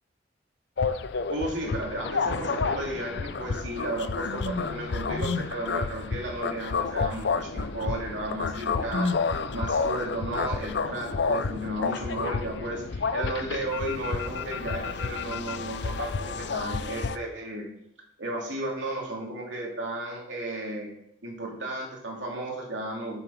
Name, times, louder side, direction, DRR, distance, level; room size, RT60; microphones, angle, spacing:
sound 1, 0.8-17.2, left 4 dB, 60° left, 0.5 m, -30 dB
voice 1, 1.3-17.6 18.2-20.9 21.2-23.2, right 1 dB, 70° right, -2 dB, 2.8 m, -34 dB
7.9 x 6.9 x 5.7 m, 0.77 s
head